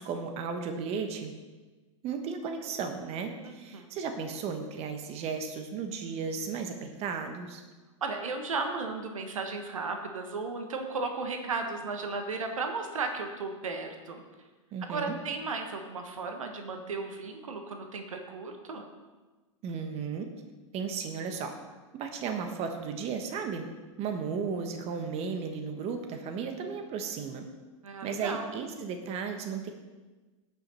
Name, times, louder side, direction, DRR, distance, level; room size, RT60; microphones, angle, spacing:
voice 1, 0.0-1.3 2.0-7.6 14.7-15.2 19.6-20.3 20.7-21.5 21.9-23.7 24.0-27.5 28.0-29.7, right 5 dB, 40° right, 5 dB, 1.3 m, -35 dB
voice 2, 8.0-14.2 14.9-18.8 27.8-28.5, right 4 dB, 80° right, 5 dB, 1.5 m, -35 dB
17.5 x 6.0 x 4.3 m, 1.2 s
hypercardioid pair, 105°, 17 cm